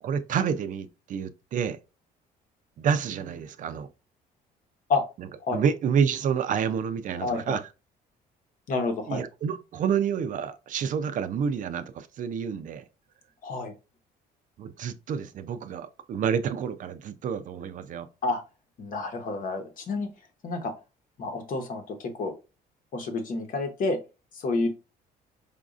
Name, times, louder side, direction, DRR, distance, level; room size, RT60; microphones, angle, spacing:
voice 1, 0.0-1.8 2.8-3.9 5.2-7.6 9.1-12.8 14.6-18.1, right 7 dB, 50° right, 0.4 m, -29 dB
voice 2, 7.2-7.6 8.7-9.2 13.4-13.7 18.2-18.4 18.8-20.1 20.4-20.7 21.2-22.4 22.9-24.0 24.3-24.7, left 3 dB, 55° left, 1.0 m, -29 dB
5.0 x 2.4 x 2.4 m
cardioid pair, 110°, 17 cm